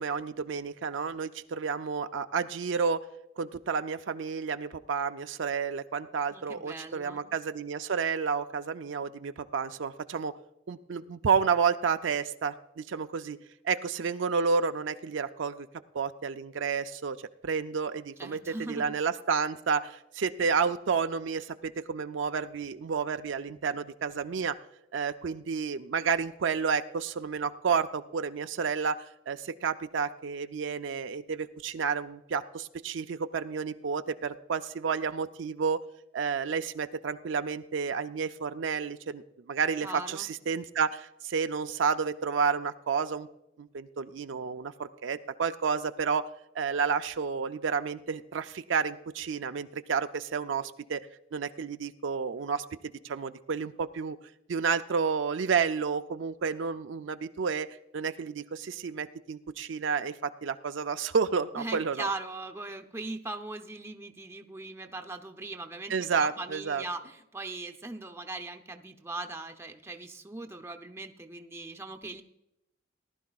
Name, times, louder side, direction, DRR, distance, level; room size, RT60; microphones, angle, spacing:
voice 1, 0.0-3.0 3.4-10.3 10.7-13.4 13.6-15.7 15.9-24.6 24.9-35.8 36.1-43.3 43.6-46.3 46.6-51.1 51.3-52.6 53.0-54.2 54.5-57.7 57.9-62.1 65.9-66.8, right 5 dB, 75° right, 9 dB, 0.5 m, -30 dB
voice 2, 6.3-7.4 18.2-19.0 39.8-40.3 61.6-72.2, right 2 dB, 15° right, 5 dB, 0.6 m, -39 dB
19.0 x 11.5 x 2.4 m, 0.87 s
head